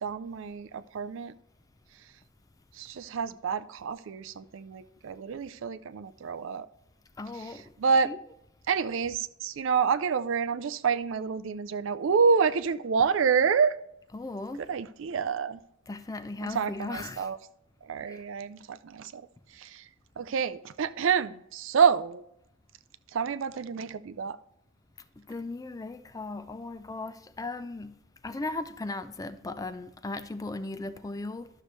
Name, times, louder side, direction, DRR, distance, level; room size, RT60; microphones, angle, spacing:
voice 1, 0.0-1.3 2.8-6.7 7.4-7.5 7.8-8.1 8.7-13.8 14.7-15.6 16.4-17.4 17.9-19.2 19.6-19.8 20.2-22.2 23.1-24.4, right 6 dB, 65° right, 0.4 m, -28 dB
voice 2, 7.2-7.7 8.0-8.2 14.1-14.7 15.9-17.3 18.1-18.2 25.2-28.0 28.2-31.5, left 2 dB, 15° left, 0.4 m, -37 dB
12.0 x 6.6 x 3.1 m
head